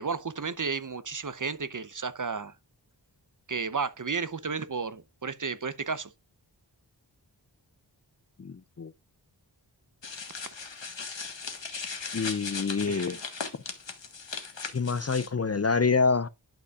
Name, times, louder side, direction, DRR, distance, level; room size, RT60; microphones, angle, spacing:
voice 1, 0.0-2.5 3.5-6.1 12.9-13.2, right 5 dB, 45° right, 0.8 m, -33 dB
voice 2, 8.4-8.9 12.1-13.2 14.7-16.3, left 4 dB, 35° left, 0.5 m, -26 dB
sound 1, 10.0-15.3, left 5 dB, 80° left, 1.6 m, -38 dB
11.5 x 5.3 x 2.4 m
wide cardioid pair, 55°, 44 cm